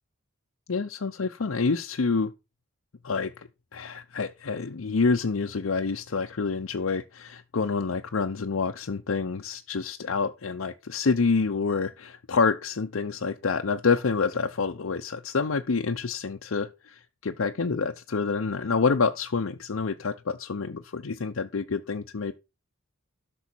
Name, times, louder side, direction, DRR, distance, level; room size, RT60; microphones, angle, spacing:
voice 1, 0.7-2.3 3.0-22.3, left 4 dB, 80° left, 0.7 m, -27 dB
12.5 x 6.2 x 4.5 m
head